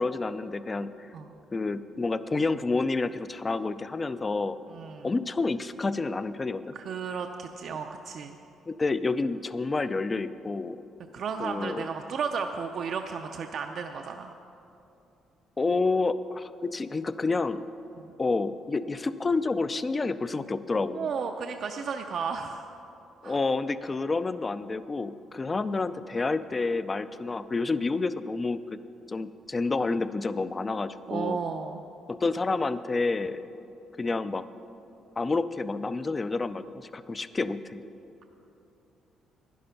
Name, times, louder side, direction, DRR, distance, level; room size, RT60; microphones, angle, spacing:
voice 1, 0.0-1.1 1.5-4.6 5.0-6.7 8.7-10.8 11.4-11.9 15.6-17.7 18.2-21.1 23.2-28.8 29.1-31.4 32.1-33.4 34.0-34.4 35.2-37.8, left 3 dB, 20° left, 14 dB, 0.3 m, -29 dB
voice 2, 4.7-5.1 6.7-8.4 11.1-14.3 17.9-18.1 20.9-22.7 23.2-23.4 31.1-31.8, right 6 dB, 50° right, 4 dB, 0.5 m, -33 dB
12.0 x 10.0 x 5.7 m, 2.8 s
cardioid pair, 165°, 0 cm